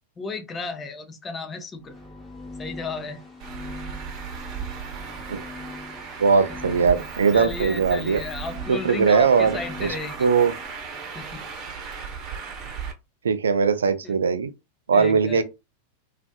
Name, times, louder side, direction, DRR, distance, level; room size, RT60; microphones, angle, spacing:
voice 1, 0.2-1.9 2.6-3.2 7.3-10.3 11.1-11.4 14.0-14.2 14.9-15.4, left 3 dB, 20° left, 0.6 m, -33 dB
sound 1, 1.8-10.9, left 2 dB, 5° left, 1.1 m, -42 dB
Traffic noise roadway noise, 3.4-12.9, right 6 dB, 35° right, 0.8 m, -36 dB
voice 2, 6.2-8.2 8.7-9.9 10.2-10.5 13.2-14.5 14.9-15.4, right 5 dB, 70° right, 0.4 m, -20 dB
2.4 x 2.4 x 2.3 m
figure-of-eight pair, 90°, 0 cm